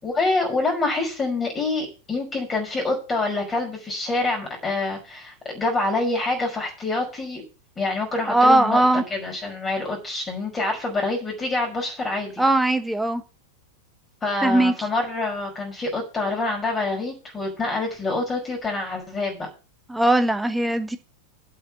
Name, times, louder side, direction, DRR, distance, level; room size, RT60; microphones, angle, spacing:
voice 1, 0.0-7.4 7.8-12.4 14.2-19.5, left 2 dB, 15° left, 5.5 m, -26 dB
voice 2, 8.3-9.0 12.4-13.2 14.4-14.7 19.9-21.0, right 2 dB, 5° right, 1.3 m, -19 dB
8.3 x 6.8 x 8.5 m
figure-of-eight pair, 90°, 0 cm